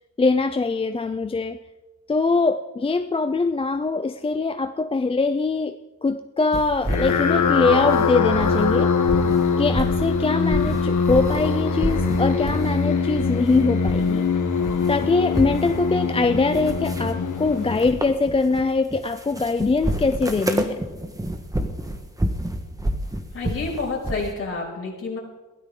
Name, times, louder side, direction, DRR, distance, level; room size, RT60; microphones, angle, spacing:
voice 1, 0.2-1.6 2.1-5.8 6.0-8.9 9.6-14.2 14.9-20.8, left 3 dB, 20° left, 9 dB, 0.4 m, -22 dB
sound 1, 6.5-8.7 9.0-11.5 11.8-12.8 13.1-14.3 14.5-24.3, right 1 dB, 10° right, 1.4 m, -30 dB
sound 2, 6.8-18.3, left 5 dB, 70° left, 1.9 m, -23 dB
voice 2, 23.3-25.2, left 3 dB, 45° left, -4 dB, 6.2 m, -29 dB
22.5 x 16.5 x 3.8 m, 1.1 s
wide cardioid pair, 155°, 32 cm